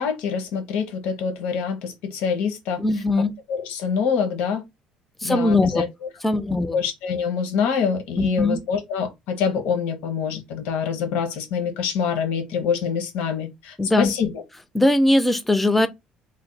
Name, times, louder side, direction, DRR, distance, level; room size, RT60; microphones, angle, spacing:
voice 1, 0.0-2.8 3.5-4.6 5.2-5.9 6.5-14.3, left 6 dB, 90° left, 0.9 m, -25 dB
voice 2, 2.8-3.3 5.2-5.8 6.2-6.8 8.2-8.6 13.8-14.1 14.7-15.9, left 2 dB, 5° left, 0.4 m, -20 dB
3.3 x 2.2 x 3.9 m
cardioid pair, 170°, 2 cm